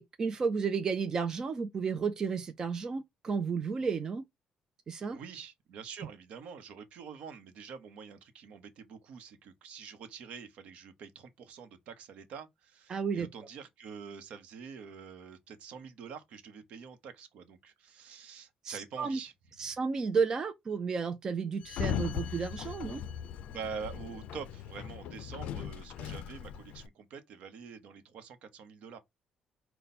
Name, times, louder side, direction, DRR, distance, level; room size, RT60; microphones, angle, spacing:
voice 1, 0.0-4.2 4.9-5.2 12.9-13.3 18.6-19.2 19.6-23.0, right 5 dB, 30° right, 0.4 m, -32 dB
voice 2, 5.1-19.3 19.6-19.8 23.5-29.0, right 6 dB, 65° right, 0.9 m, -46 dB
Sliding door, 21.6-26.9, left 8 dB, 75° left, 0.4 m, -38 dB
5.4 x 2.2 x 4.1 m
cardioid pair, 160°, 2 cm